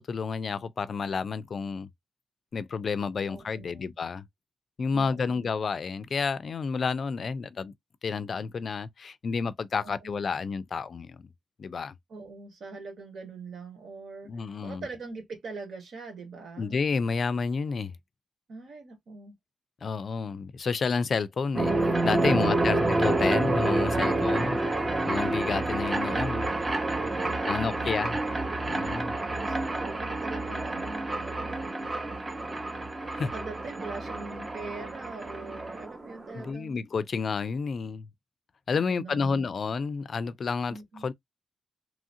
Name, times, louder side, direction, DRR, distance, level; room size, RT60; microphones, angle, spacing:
voice 1, 0.0-1.9 2.5-4.2 4.8-7.7 8.0-11.3 11.6-12.0 14.3-14.9 16.6-17.9 19.8-21.7 22.0-24.6 25.0-26.5 27.4-28.2 28.7-29.1 33.1-33.3 36.3-38.1 38.7-40.8 41.0-41.1, left 5 dB, 50° left, 0.4 m, -30 dB
voice 2, 3.2-3.9 4.9-5.5 9.8-10.2 12.1-16.8 18.5-19.3 26.9-28.0 29.4-32.1 33.2-36.8 38.7-39.7 40.7-41.1, right 3 dB, 70° right, 1.5 m, -43 dB
sound 1, 21.5-36.5, right 2 dB, 25° right, 0.8 m, -28 dB
3.0 x 2.4 x 2.7 m
cardioid pair, 100°, 0 cm